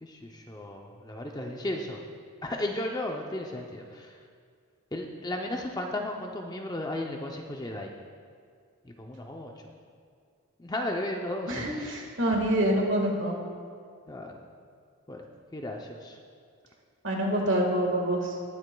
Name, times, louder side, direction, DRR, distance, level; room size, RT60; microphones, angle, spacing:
voice 1, 0.0-2.0 2.4-4.1 4.9-7.9 8.8-9.5 10.6-11.9 12.7-12.9 14.1-14.3 15.1-15.2 15.5-16.2, left 1 dB, 20° left, 2 dB, 0.5 m, -35 dB
voice 2, 11.5-13.3 17.0-18.3, right 1 dB, 60° right, 1 dB, 1.7 m, -26 dB
20.0 x 7.8 x 2.3 m, 2.1 s
head